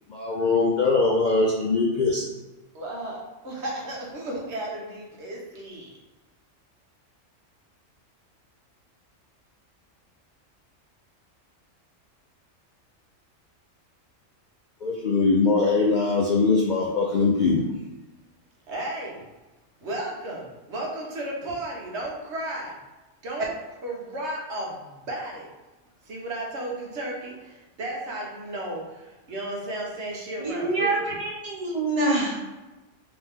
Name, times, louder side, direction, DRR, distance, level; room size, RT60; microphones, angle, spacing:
voice 1, 0.1-2.2 14.8-17.6, left 3 dB, 60° left, -2 dB, 0.4 m, -22 dB
voice 2, 2.7-5.9 18.7-19.2 19.8-22.7 23.2-23.5 23.8-25.5 26.1-31.2, right 1 dB, 60° right, -2 dB, 1.2 m, -34 dB
voice 3, 30.4-32.4, right 2 dB, 45° right, -5 dB, 0.4 m, -26 dB
3.4 x 3.0 x 3.5 m, 1.1 s
omnidirectional pair, 1.3 m